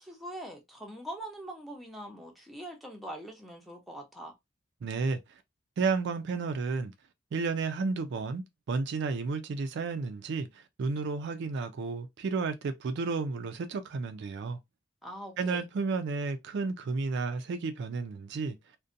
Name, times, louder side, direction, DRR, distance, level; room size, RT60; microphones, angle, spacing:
voice 1, 0.0-4.3 15.0-15.6, right 1 dB, ahead, 0.6 m, -43 dB
voice 2, 4.8-5.4 5.8-6.9 7.3-14.6 15.4-18.6, right 4 dB, 60° right, 0.3 m, -32 dB
2.6 x 2.1 x 2.5 m
head